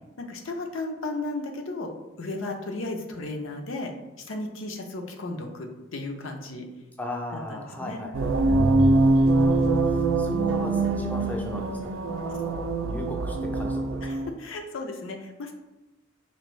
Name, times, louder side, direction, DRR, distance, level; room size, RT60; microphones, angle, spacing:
voice 1, 0.2-1.9 2.2-3.9 4.2-6.7 7.3-8.0 8.5-9.0 14.0-15.5, left 2 dB, 80° left, 3 dB, 0.6 m, -35 dB
voice 2, 7.0-8.5 9.1-14.1, left 1 dB, 10° left, 1 dB, 0.4 m, -38 dB
sound 1, 8.1-14.3, right 2 dB, 80° right, 0.4 m, -23 dB
Bowed string instrument, 8.5-10.9, right 1 dB, 30° right, 0.6 m, -32 dB
4.4 x 2.6 x 3.0 m, 1.0 s
head